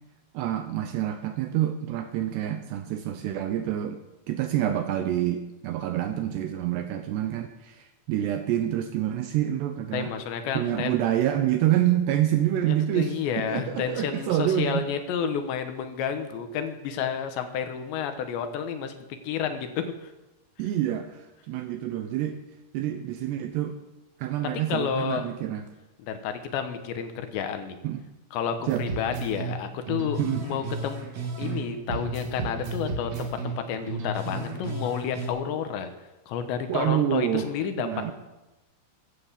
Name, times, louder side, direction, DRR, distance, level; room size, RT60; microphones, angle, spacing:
voice 1, 0.3-4.0 4.3-10.1 10.5-14.8 20.6-21.2 21.5-22.4 22.7-23.8 24.2-25.6 27.8-28.0 28.7-28.9 30.2-30.5 36.7-37.5 37.8-38.1, right 12 dB, 75° right, 7 dB, 2.6 m, -27 dB
voice 2, 9.9-11.0 12.6-20.1 24.7-25.2 26.0-27.8 28.3-31.0 31.4-35.9 36.3-38.1, left 7 dB, 70° left, 7 dB, 3.2 m, -30 dB
sound 1, 28.7-31.6 31.9-35.3, right 3 dB, 45° right, 2.5 m, -33 dB
15.5 x 10.0 x 7.4 m, 1.0 s
omnidirectional pair, 5.6 m